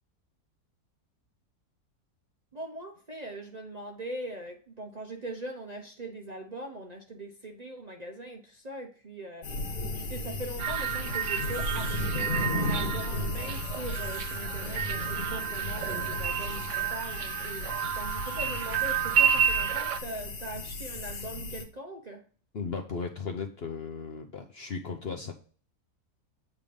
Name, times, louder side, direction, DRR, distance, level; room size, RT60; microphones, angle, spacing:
voice 1, 2.5-9.5 10.1-22.2, right 1 dB, 35° right, 2 dB, 0.7 m, -41 dB
sound 1, 9.4-21.6, left 2 dB, 75° left, 1.7 m, -35 dB
sound 2, 10.6-20.0, right 8 dB, 60° right, 0.9 m, -30 dB
voice 2, 22.5-25.3, left 5 dB, 50° left, 4 dB, 0.8 m, -36 dB
8.1 x 3.6 x 5.1 m, 0.41 s
omnidirectional pair, 1.7 m